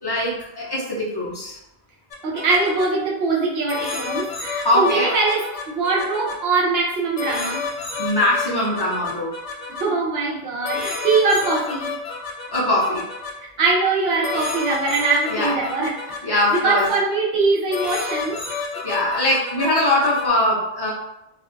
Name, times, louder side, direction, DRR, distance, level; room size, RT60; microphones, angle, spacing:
voice 1, 0.0-1.6 4.6-5.2 8.0-9.3 12.5-13.0 15.3-15.6 16.2-16.9 18.8-20.9, left 1 dB, 35° left, -6 dB, 0.4 m, -21 dB
sound 1, 2.1-2.9 3.7-6.3 7.2-9.8 10.6-13.3 14.2-16.9 17.7-20.3, left 4 dB, 85° left, 0.9 m, -30 dB
voice 2, 2.2-7.6 9.8-11.9 13.6-16.0 16.3-18.4, right 3 dB, 65° right, -4 dB, 0.9 m, -22 dB
2.5 x 2.3 x 2.5 m, 0.88 s
omnidirectional pair, 1.1 m